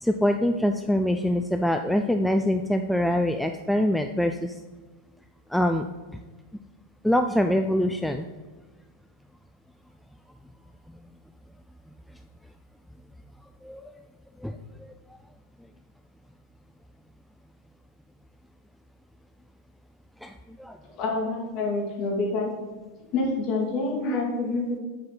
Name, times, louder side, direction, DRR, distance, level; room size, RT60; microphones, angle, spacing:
voice 1, 0.0-4.5 5.5-5.9 7.0-8.3 13.6-14.0 14.4-14.6 14.8-14.9 20.2-20.8, left 1 dB, ahead, 5 dB, 0.3 m, -24 dB
voice 2, 21.0-22.5 23.1-24.8, left 3 dB, 40° left, -1 dB, 2.2 m, -27 dB
7.3 x 4.9 x 5.6 m, 1.3 s
figure-of-eight pair, 90°, 0 cm